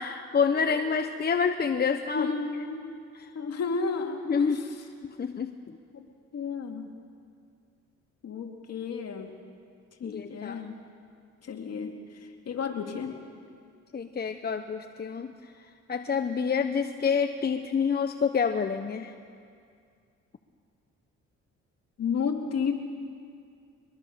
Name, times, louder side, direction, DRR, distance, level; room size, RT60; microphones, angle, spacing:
voice 1, 0.0-2.3 3.2-3.3 4.2-4.6 5.2-5.5 10.0-10.6 13.9-15.5 15.9-19.1, left 6 dB, 30° left, 7 dB, 0.9 m, -27 dB
voice 2, 2.1-2.9 3.3-4.6 5.9-6.0 6.3-6.9 8.2-9.3 10.0-10.7 11.4-13.2 22.0-22.8, left 5 dB, 55° left, 3 dB, 2.6 m, -32 dB
22.5 x 21.0 x 6.8 m, 2.3 s
cardioid pair, 90°, 30 cm